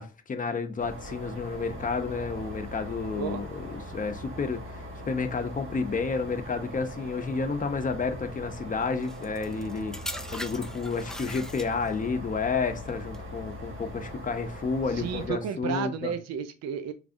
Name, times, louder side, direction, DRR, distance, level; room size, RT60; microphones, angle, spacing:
voice 1, 0.0-10.0 10.3-16.1, left 4 dB, 25° left, 0.7 m, -31 dB
sound 1, 0.8-15.3, equal, 45° right, 1.3 m, -41 dB
voice 2, 3.1-3.4 14.9-16.9, right 7 dB, 60° right, 0.6 m, -32 dB
sound 2, 9.0-12.1 12.9-13.2, left 1 dB, ahead, 0.3 m, -40 dB
4.7 x 3.3 x 2.6 m
cardioid pair, 90°, 30 cm